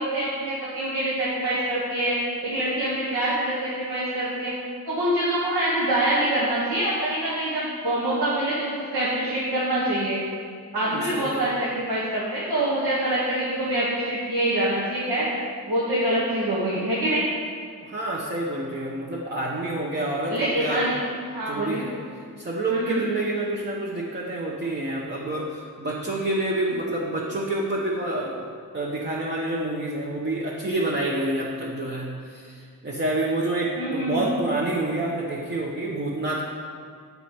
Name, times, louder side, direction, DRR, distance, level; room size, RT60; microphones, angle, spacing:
voice 1, 0.0-2.2 2.4-4.5 4.9-10.2 10.7-15.3 15.7-17.2 20.2-20.9 21.3-21.8 22.7-23.0 33.7-34.3, right 1 dB, 75° right, -7 dB, 1.4 m, -25 dB
voice 2, 10.8-11.5 17.8-20.9 21.4-22.0 22.4-36.4, right 2 dB, 25° right, -3 dB, 0.9 m, -28 dB
6.9 x 5.3 x 4.5 m, 2.2 s
cardioid pair, 60°, 39 cm